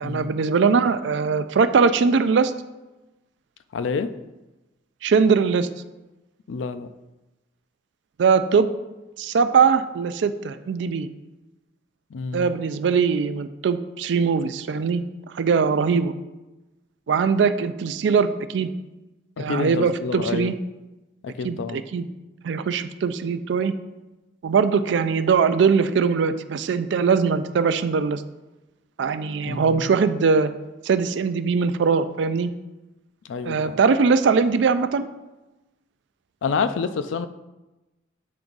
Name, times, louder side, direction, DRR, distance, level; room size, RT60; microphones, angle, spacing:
voice 1, 0.0-2.5 5.0-5.7 8.2-8.7 9.2-11.1 12.3-15.0 15.3-16.1 17.1-18.7 19.4-20.5 21.4-22.1 22.4-23.7 24.4-28.2 29.0-30.5 30.8-32.5 33.4-35.0, right 5 dB, 65° right, 12 dB, 0.4 m, -21 dB
voice 2, 3.7-4.1 6.5-6.9 12.1-12.5 19.4-20.5 21.2-21.8 29.4-29.8 33.2-33.7 36.4-37.3, left 5 dB, 85° left, 11 dB, 0.4 m, -28 dB
8.6 x 3.5 x 3.9 m, 1.1 s
head